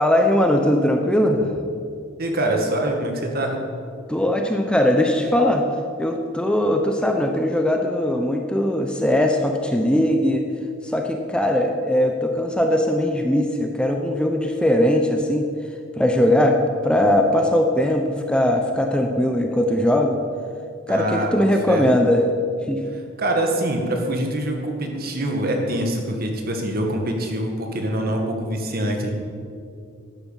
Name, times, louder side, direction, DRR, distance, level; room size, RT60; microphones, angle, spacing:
voice 1, 0.0-1.4 4.1-5.6 6.0-10.4 10.8-15.5 16.0-16.6 16.8-20.2 20.9-22.2 22.7-22.8, left 1 dB, 5° left, 3 dB, 0.8 m, -20 dB
voice 2, 2.2-3.6 20.9-21.9 23.2-29.2, right 1 dB, 50° right, 2 dB, 2.0 m, -24 dB
12.0 x 9.5 x 7.4 m, 2.4 s
head